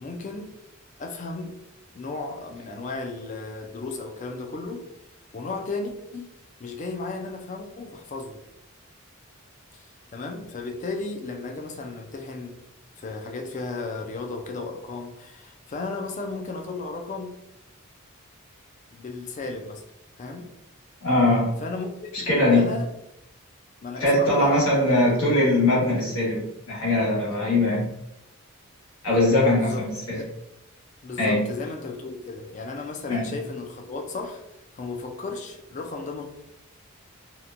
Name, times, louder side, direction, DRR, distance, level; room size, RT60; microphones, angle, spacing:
voice 1, 0.0-0.6 1.0-1.6 1.9-4.8 5.3-6.3 6.6-8.4 9.7-12.6 13.0-17.4 18.9-19.8 20.2-20.5 21.6-22.9 23.8-25.2 29.6-29.8 30.2-30.3 31.0-34.4 34.7-36.3, left 3 dB, 35° left, 3 dB, 0.3 m, -34 dB
voice 2, 21.0-21.5 22.3-22.6 24.0-27.9 29.0-30.2 31.2-31.4 33.1-33.3, left 1 dB, 85° left, -6 dB, 1.3 m, -21 dB
2.8 x 2.2 x 2.5 m, 0.85 s
head